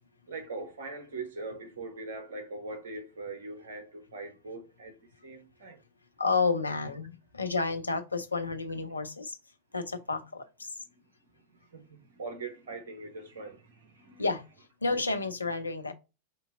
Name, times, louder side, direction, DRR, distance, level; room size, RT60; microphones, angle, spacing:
voice 1, 0.3-5.8 11.7-14.2, right 3 dB, 60° right, 1.2 m, -41 dB
voice 2, 6.2-9.4 9.7-10.7 14.2-14.4 14.8-15.9, left 4 dB, 80° left, 0.5 m, -30 dB
5.1 x 2.8 x 2.6 m
figure-of-eight pair, 90°, 0 cm